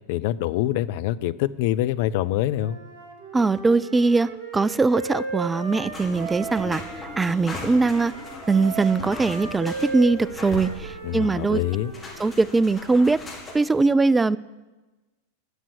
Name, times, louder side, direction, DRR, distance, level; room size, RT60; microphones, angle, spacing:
voice 1, 0.1-2.8 11.0-11.9, left 13 dB, 50° left, 14 dB, 0.5 m, -25 dB
Wind instrument woodwind instrument, 2.6-7.2 7.8-12.6, right 4 dB, 45° right, 2.4 m, -36 dB
voice 2, 3.3-8.1 8.5-11.6 12.2-13.2 13.5-14.4, right 3 dB, 10° right, 19 dB, 0.4 m, -21 dB
sound 1, 5.9-13.5, left 2 dB, 15° left, 4.8 m, -38 dB
13.0 x 7.5 x 9.9 m, 1.2 s
figure-of-eight pair, 90°, 0 cm